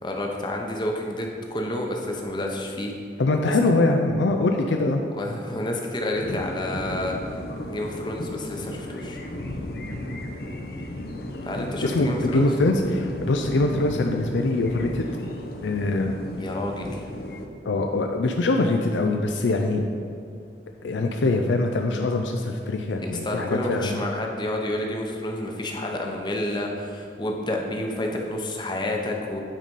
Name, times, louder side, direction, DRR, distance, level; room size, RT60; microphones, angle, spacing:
voice 1, 0.0-2.9 3.5-3.6 5.1-7.1 7.7-9.2 11.4-12.5 16.4-17.0 23.0-29.4, left 1 dB, 25° left, 1 dB, 0.8 m, -29 dB
voice 2, 3.2-5.0 11.8-15.1 15.6-16.2 17.7-19.8 20.8-24.0, left 2 dB, 90° left, 3 dB, 0.5 m, -23 dB
sound 1, 6.1-17.5, left 1 dB, 55° left, 0.7 m, -34 dB
9.0 x 4.2 x 5.3 m, 2.5 s
head